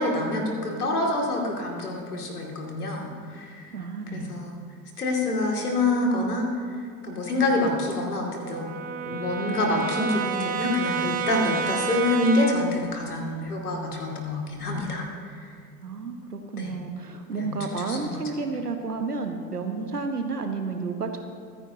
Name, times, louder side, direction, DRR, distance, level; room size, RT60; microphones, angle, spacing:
voice 1, 0.0-3.7 4.1-4.6 5.0-6.5 7.0-8.7 9.1-15.5 16.6-16.7 17.4-18.2, left 2 dB, 75° left, 0 dB, 2.5 m, -27 dB
voice 2, 3.7-4.4 15.8-21.2, right 4 dB, 90° right, 5 dB, 1.2 m, -31 dB
Brass instrument, 7.2-12.8, right 6 dB, 20° right, 1.0 m, -31 dB
25.0 x 9.9 x 2.8 m, 2.1 s
figure-of-eight pair, 85°, 45 cm